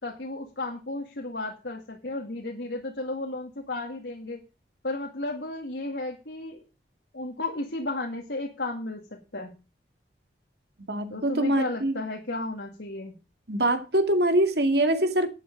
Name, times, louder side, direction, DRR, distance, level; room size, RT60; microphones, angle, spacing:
voice 1, 0.0-4.4 4.8-6.6 7.1-9.0 9.3-9.5 11.1-13.2, left 2 dB, 70° left, 2.1 m, -33 dB
voice 2, 10.9-11.9 13.5-15.3, right 1 dB, 65° right, 2.1 m, -23 dB
11.0 x 9.4 x 5.3 m
head